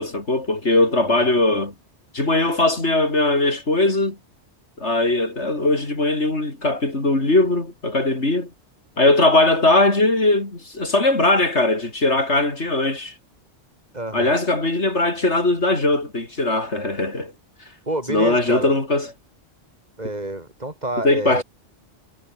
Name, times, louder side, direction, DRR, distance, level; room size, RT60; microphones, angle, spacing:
voice 1, 0.0-1.7 2.1-4.2 4.8-8.5 9.0-13.1 14.1-17.3 18.1-19.1 21.0-21.4, left 2 dB, 75° left, 5.1 m, -20 dB
voice 2, 13.9-14.4 17.9-18.7 20.0-21.4, right 1 dB, 35° right, 4.4 m, -28 dB
omnidirectional pair, 1.2 m